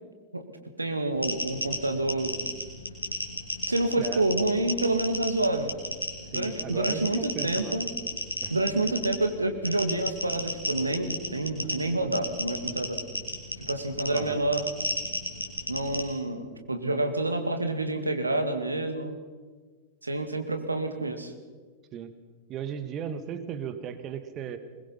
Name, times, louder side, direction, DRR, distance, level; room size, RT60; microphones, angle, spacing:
voice 1, 0.8-2.4 3.7-5.7 6.3-7.9 8.5-13.0 13.7-14.7 15.7-19.1 20.0-21.3, right 2 dB, 80° right, 7 dB, 2.1 m, -28 dB
sound 1, 1.1-16.0, left 1 dB, 85° left, 2.7 m, -34 dB
voice 2, 6.2-7.8 8.4-8.5 14.1-14.4 21.9-22.1 22.5-24.6, right 8 dB, 35° right, 10 dB, 1.8 m, -36 dB
21.5 x 21.5 x 5.7 m, 1.4 s
figure-of-eight pair, 90°, 0 cm